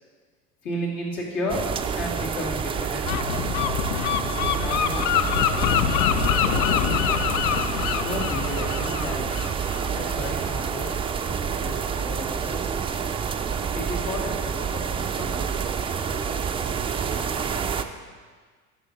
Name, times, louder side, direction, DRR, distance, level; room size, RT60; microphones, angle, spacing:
voice 1, 0.6-1.6 1.9-4.1 4.4-7.2 8.0-10.9 11.2-12.9 13.7-17.4, left 1 dB, 65° left, -3 dB, 2.5 m, -35 dB
sound 1, 1.5-17.8, right 6 dB, 15° right, 0.3 m, -28 dB
Gull seagull, 3.0-10.5, left 11 dB, 50° left, 0.5 m, -25 dB
12.5 x 5.7 x 4.0 m, 1.5 s
hypercardioid pair, 70°, 42 cm